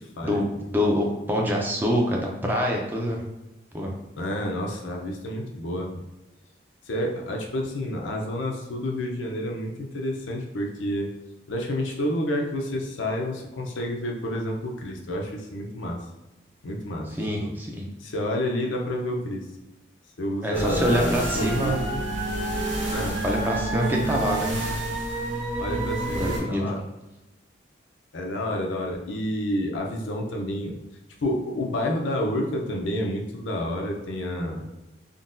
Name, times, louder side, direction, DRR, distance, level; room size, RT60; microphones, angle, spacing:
voice 1, 0.0-0.6 4.2-6.0 6.9-11.1 11.5-16.0 16.6-17.1 17.4-17.5 18.0-19.5 20.2-22.0 22.9-23.2 23.9-24.1 25.6-26.8 28.1-30.8 31.2-34.6, left 1 dB, 85° left, 0 dB, 0.6 m, -29 dB
voice 2, 0.7-3.2 3.7-3.9 17.1-17.9 20.4-21.8 23.2-24.5 26.1-26.6, equal, 10° right, -1 dB, 0.4 m, -25 dB
sound 1, 20.5-26.4, right 1 dB, 85° right, 0.9 m, -28 dB
3.7 x 2.2 x 2.5 m, 0.99 s
head